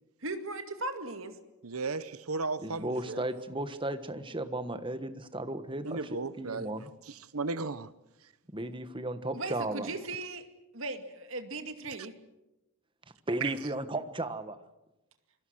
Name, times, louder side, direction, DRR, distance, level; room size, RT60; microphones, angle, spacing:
voice 1, 0.2-1.4 9.3-10.5 10.7-12.1, right 2 dB, 65° right, 2.2 m, -37 dB
voice 2, 1.6-3.2 5.8-6.7 7.1-7.9 13.4-13.5, right 4 dB, 85° right, 1.1 m, -35 dB
voice 3, 2.6-6.0 6.4-6.9 8.5-9.9 13.3-14.6, right 1 dB, 25° right, 1.3 m, -35 dB
27.5 x 22.5 x 6.4 m
head